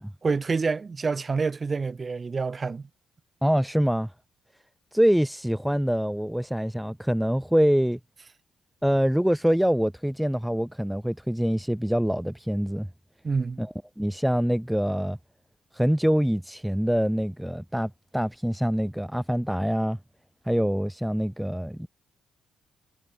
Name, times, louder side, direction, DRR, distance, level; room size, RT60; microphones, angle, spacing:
voice 1, 0.2-2.9 13.2-13.7, right 4 dB, 35° right, 2.1 m, -27 dB
voice 2, 3.4-4.1 4.9-8.0 8.8-12.9 13.6-15.2 15.7-20.0 20.5-21.9, equal, ahead, 1.1 m, -25 dB
cardioid pair, 90°, 0 cm